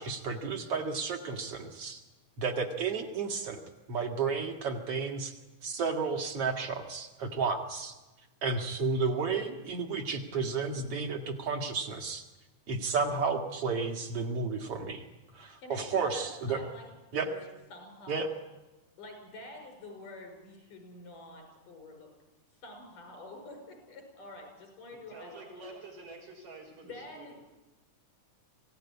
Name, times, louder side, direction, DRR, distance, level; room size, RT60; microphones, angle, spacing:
voice 1, 0.0-2.0 2.4-3.6 3.9-5.3 5.6-7.9 8.4-12.2 12.7-15.0 15.3-16.6 17.1-17.3 18.1-18.3, right 4 dB, 50° right, 3 dB, 2.8 m, -32 dB
voice 2, 15.6-18.3 19.0-22.1 22.6-25.7 26.9-27.3, left 1 dB, 85° left, 3 dB, 7.3 m, -48 dB
voice 3, 25.1-27.3, right 2 dB, 85° right, 1 dB, 7.9 m, -48 dB
26.5 x 17.0 x 9.8 m, 1.1 s
omnidirectional pair, 3.6 m